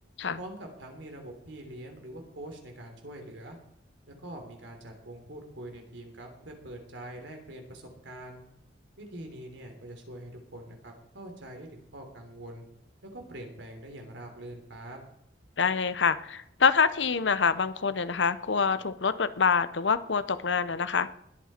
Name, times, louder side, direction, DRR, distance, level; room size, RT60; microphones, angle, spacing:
voice 1, 0.3-3.6 4.1-8.4 9.0-12.6 13.0-15.0, right 1 dB, 80° right, 3 dB, 3.5 m, -44 dB
voice 2, 15.6-21.1, left 5 dB, 75° left, 14 dB, 0.8 m, -26 dB
21.0 x 8.5 x 4.4 m, 0.76 s
head